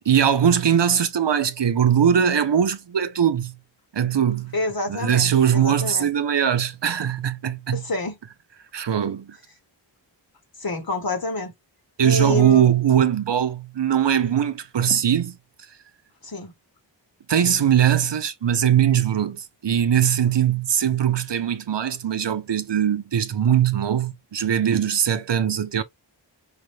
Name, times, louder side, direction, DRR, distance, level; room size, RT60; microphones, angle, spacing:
voice 1, 0.1-3.6 3.9-4.6 4.9-7.8 8.7-9.4 12.0-15.4 17.3-25.8, right 9 dB, 65° right, 0.7 m, -21 dB
voice 2, 4.5-6.1 7.7-8.2 10.6-11.5 12.0-12.7 16.2-16.5, left 2 dB, 50° left, 1.4 m, -28 dB
5.0 x 2.2 x 3.2 m
wide cardioid pair, 40°, 46 cm